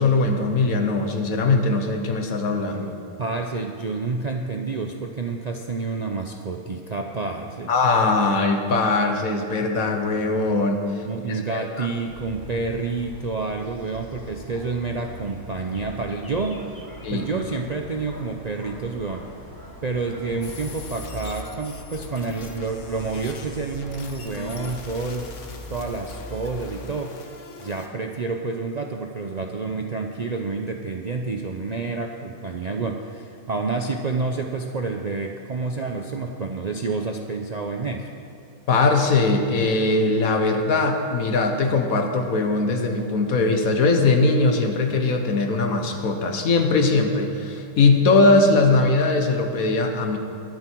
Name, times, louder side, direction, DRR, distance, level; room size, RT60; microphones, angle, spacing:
voice 1, 0.0-2.9 7.7-11.9 17.0-17.3 38.7-50.2, left 3 dB, 75° left, 5 dB, 1.5 m, -21 dB
voice 2, 3.2-7.7 11.1-16.7 17.1-19.2 19.8-25.3 25.7-27.1 27.6-38.1, right 4 dB, 50° right, 3 dB, 0.5 m, -29 dB
sound 1, 12.1-26.9, left 1 dB, 15° left, 1.2 m, -42 dB
sound 2, 20.4-27.9, left 4 dB, 60° left, 1.4 m, -42 dB
21.5 x 7.6 x 4.6 m, 2.6 s
omnidirectional pair, 1.5 m